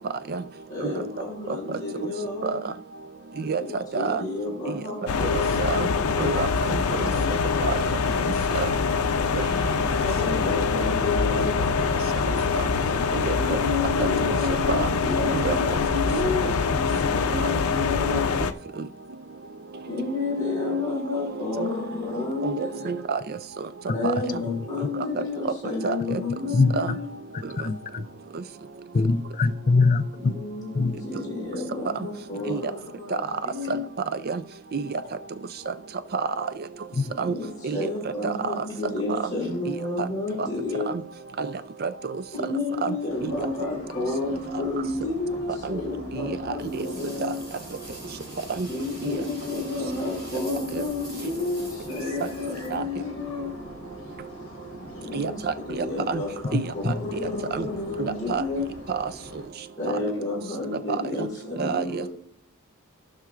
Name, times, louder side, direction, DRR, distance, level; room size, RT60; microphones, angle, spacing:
voice 1, 0.7-2.6 3.6-3.7 3.9-7.3 10.0-11.6 13.4-18.3 19.9-23.0 23.9-27.1 30.1-33.8 37.2-40.9 42.3-47.4 48.7-53.5 54.9-58.7 59.8-62.1, left 3 dB, 20° left, -5 dB, 4.2 m, -31 dB
voice 2, 3.9-4.2 4.7-4.8 5.3-5.9 6.2-6.8 7.6-7.7 8.5-8.8 9.3-9.5 12.3-12.6 13.1-13.6 14.0-14.4 14.7-15.0 15.3-15.6 21.6-21.7 22.4-23.2 24.3-24.4 25.0-25.1 25.8-26.2 26.7-26.9 32.5-32.6 33.7-33.8 34.3-34.4 34.7-35.0 35.7-35.8 36.1-36.5 37.2-37.3 37.6-37.9 38.2-38.6 39.7-40.1 40.4-40.5 40.9-41.0 41.4-41.5 41.8-42.2 42.8-42.9 43.2-43.5 45.6-45.8 46.1-46.4 46.7-46.8 47.2-47.3 48.5-48.7 49.0-49.2 50.7-50.8 52.7-52.8 55.1-56.2 56.5-56.9 57.5-57.7 58.0-58.4 58.9-59.1 61.2-61.3 61.6-62.1, right 5 dB, 45° right, 12 dB, 0.4 m, -29 dB
sound 1, 5.1-18.5, left 5 dB, 90° left, 0.6 m, -24 dB
voice 3, 27.6-28.1 28.9-30.3 30.7-31.0 37.0-37.1 56.5-56.9, left 3 dB, 40° left, 10 dB, 0.5 m, -23 dB
sound 2, 43.1-59.5, equal, 65° left, 1.5 m, -42 dB
sound 3, 46.6-53.3, right 1 dB, 20° right, 3.5 m, -46 dB
15.5 x 5.8 x 2.5 m, 0.63 s
head